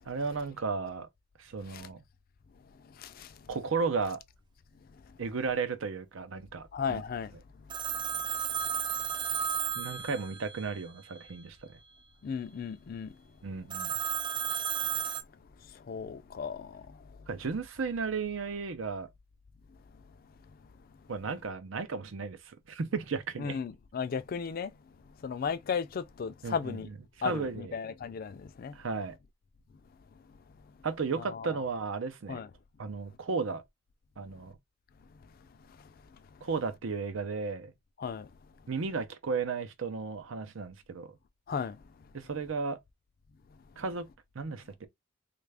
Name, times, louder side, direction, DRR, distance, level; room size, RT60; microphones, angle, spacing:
voice 1, 0.1-1.1 1.4-2.0 3.5-4.2 5.2-7.0 9.8-11.6 13.4-13.9 17.3-19.1 21.1-22.4 22.7-23.6 26.4-26.8 27.2-27.7 28.7-29.2 30.8-32.4 32.8-33.6 34.2-34.6 36.4-37.7 38.7-41.1 42.1-42.8 43.8-44.1 44.4-44.9, right 4 dB, 80° right, 0.6 m, -34 dB
voice 2, 2.8-3.5 6.7-7.3 7.9-8.0 12.2-13.2 15.6-17.1 23.4-24.7 25.2-26.9 27.2-28.8 31.2-31.6 32.3-32.5 35.8-35.9 38.0-38.3 41.5-41.8, left 6 dB, 45° left, 0.4 m, -36 dB
Telephone, 7.7-10.8 13.7-15.2, right 7 dB, 25° right, 0.3 m, -33 dB
3.2 x 2.4 x 3.3 m
head